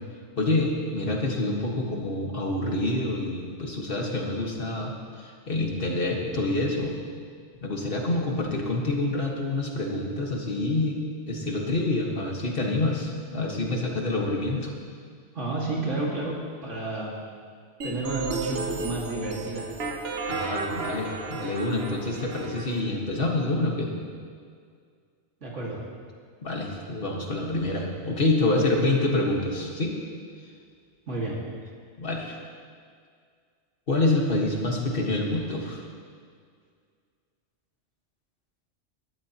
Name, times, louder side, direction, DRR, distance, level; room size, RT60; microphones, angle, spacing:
voice 1, 0.4-6.9 7.6-11.0 11.3-14.7 20.3-23.9 26.4-29.9 32.0-32.3 33.9-35.8, left 2 dB, 50° left, -1 dB, 1.8 m, -27 dB
voice 2, 15.3-17.1 17.8-19.7 25.4-25.8 31.1-31.4, right 2 dB, 75° right, -4 dB, 2.5 m, -31 dB
sound 1, 17.8-22.8, right 3 dB, 60° right, 1.0 m, -33 dB
19.5 x 12.5 x 3.0 m, 2.1 s
omnidirectional pair, 1.2 m